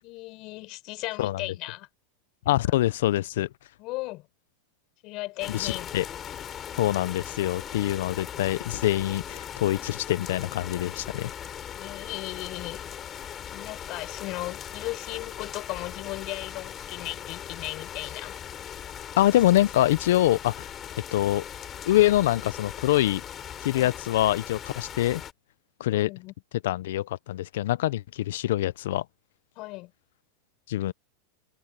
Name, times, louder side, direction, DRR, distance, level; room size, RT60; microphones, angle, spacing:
voice 1, 0.0-1.9 2.5-2.6 3.8-4.3 5.0-5.9 11.7-12.9 13.5-18.4 23.7-24.0 25.9-26.3 29.6-29.9, left 21 dB, 45° left, 7.0 m, -36 dB
voice 2, 2.5-3.5 5.5-6.1 6.7-11.3 19.2-20.7 21.1-21.4 21.8-23.2 23.6-25.2 25.8-26.1 26.6-29.0 30.7-30.9, left 14 dB, 75° left, 0.5 m, -24 dB
sound 1, 5.4-25.3, left 9 dB, 25° left, 5.7 m, -39 dB
supercardioid pair, 145°, 0 cm